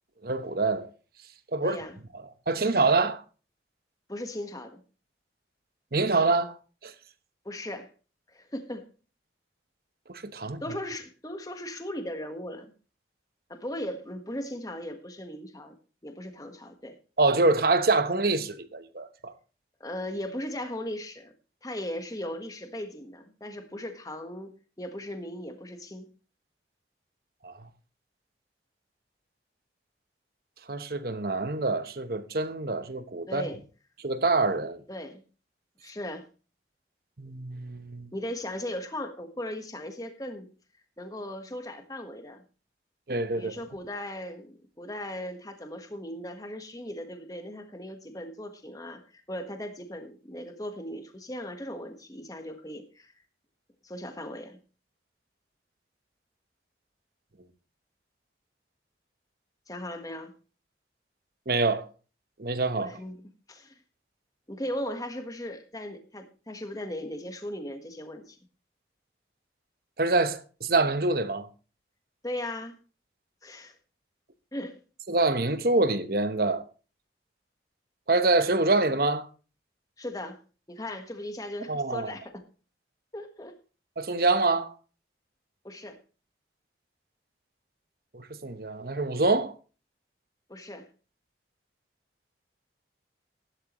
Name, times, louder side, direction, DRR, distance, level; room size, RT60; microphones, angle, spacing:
voice 1, 0.2-0.9 1.5-1.8 2.5-3.2 5.9-6.6 6.8-6.9 10.2-10.6 17.2-19.3 27.4-27.5 30.7-33.5 34.0-34.8 37.2-38.1 43.1-43.5 61.5-61.9 62.4-62.9 70.0-71.5 75.1-76.6 78.1-79.3 81.7-82.1 84.0-84.7 88.1-89.5, right 3 dB, 55° right, 1.0 m, -25 dB
voice 2, 1.6-2.0 4.1-4.8 7.4-7.9 8.3-8.9 10.6-12.7 13.5-15.7 16.0-16.9 19.8-21.3 21.6-26.1 33.3-33.6 34.9-35.2 35.8-36.2 38.1-40.5 41.0-42.4 43.3-53.1 53.8-54.6 59.7-60.3 62.8-63.2 63.5-63.8 64.5-68.4 72.2-72.8 73.4-73.8 74.5-74.8 80.0-80.4 80.7-82.4 83.1-83.5 85.6-86.0 90.5-90.9, left 1 dB, 20° left, 1.4 m, -37 dB
15.0 x 11.5 x 3.1 m
head